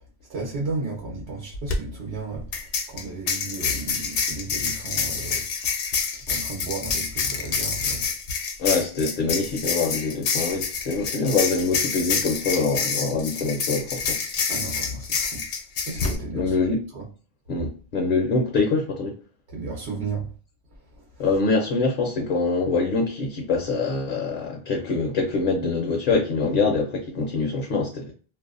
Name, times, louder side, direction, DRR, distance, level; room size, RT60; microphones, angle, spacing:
voice 1, 0.3-5.5 6.1-8.1 14.5-15.4 15.8-16.5 16.9-17.0 19.5-20.3 20.9-21.2, right 3 dB, 80° right, 1.0 m, -33 dB
sound 1, 1.5-1.8 2.5-16.2, left 5 dB, 90° left, 0.9 m, -27 dB
voice 2, 8.6-14.2 16.3-16.8 17.5-19.2 21.2-28.1, left 3 dB, 60° left, 0.6 m, -24 dB
2.6 x 2.0 x 2.4 m
omnidirectional pair, 1.1 m